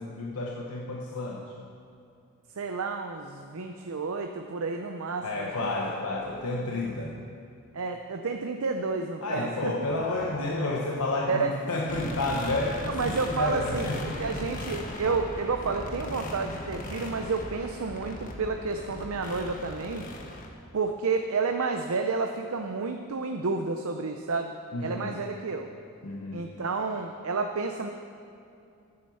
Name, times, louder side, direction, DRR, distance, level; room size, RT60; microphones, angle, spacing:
voice 1, 0.0-1.5 5.2-7.2 9.2-14.5 15.0-15.1 24.7-25.2 26.0-26.5, left 2 dB, 85° left, -2 dB, 1.1 m, -31 dB
voice 2, 2.6-5.7 7.7-9.7 11.3-11.5 12.9-13.9 14.2-20.1 20.7-24.5 24.8-25.7 26.3-27.9, right 4 dB, 75° right, 5 dB, 0.6 m, -30 dB
sound 1, 11.9-20.5, left 1 dB, 40° left, 1.2 m, -38 dB
9.6 x 9.6 x 7.0 m, 2.6 s
head